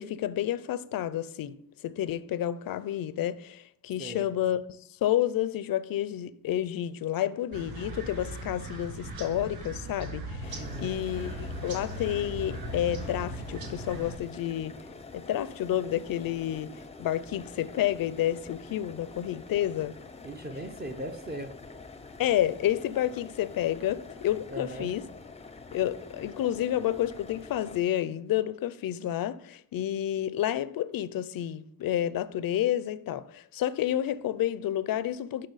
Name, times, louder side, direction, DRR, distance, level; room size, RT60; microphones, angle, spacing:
voice 1, 0.0-1.6 1.8-14.8 15.1-19.9 22.2-25.1 25.7-35.5, left 12 dB, 65° left, 0.5 m, -30 dB
voice 2, 4.0-4.3 10.5-10.9 20.2-21.6 24.5-24.9, right 1 dB, 25° right, 0.6 m, -38 dB
sound 1, 7.5-14.2, right 1 dB, 75° right, 1.8 m, -38 dB
sound 2, 10.4-27.8, left 3 dB, 15° left, 0.5 m, -46 dB
11.5 x 4.2 x 4.0 m
wide cardioid pair, 135°, 37 cm